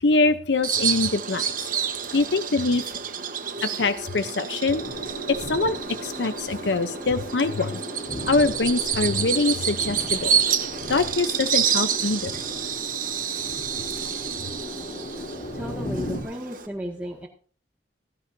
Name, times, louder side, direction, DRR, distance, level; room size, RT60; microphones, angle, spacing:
voice 1, 0.0-1.5 2.1-2.8 3.6-4.8 5.3-7.8 8.3-10.4 10.9-12.4, left 3 dB, 70° left, 10 dB, 0.7 m, -24 dB
Bird vocalization bird call bird song, 0.6-16.7, right 8 dB, 45° right, 1.2 m, -29 dB
sound 1, 4.7-16.2, left 1 dB, 45° left, 3.1 m, -37 dB
voice 2, 15.5-17.3, equal, 10° right, -3 dB, 1.9 m, -34 dB
17.0 x 16.5 x 2.7 m, 0.41 s
head